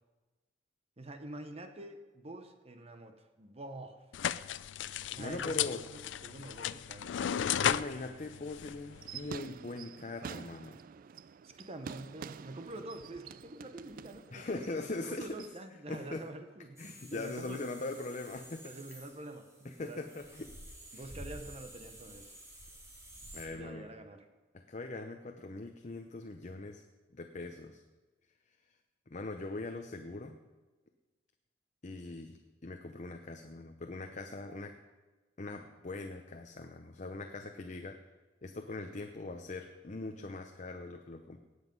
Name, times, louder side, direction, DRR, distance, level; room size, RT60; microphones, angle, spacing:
voice 1, 1.0-4.0 5.1-7.6 11.4-17.7 18.6-20.0 20.9-22.4 23.5-24.3, right 2 dB, 35° right, 7 dB, 0.9 m, -47 dB
sound 1, 4.1-9.4, left 9 dB, 80° left, 0.4 m, -35 dB
voice 2, 5.2-5.8 7.6-10.8 14.3-15.4 15.9-16.3 16.8-18.7 19.6-20.5 20.9-21.1 23.3-23.9 24.5-26.8 27.1-27.8 29.1-30.4 31.8-34.8 35.4-38.0 38.4-41.4, left 2 dB, 40° left, 5 dB, 0.7 m, -41 dB
sound 2, 8.9-15.6, right 6 dB, 50° right, 0.3 m, -48 dB
sound 3, 16.8-23.5, right 1 dB, 15° right, 2.9 m, -51 dB
18.5 x 8.1 x 5.3 m, 1.2 s
head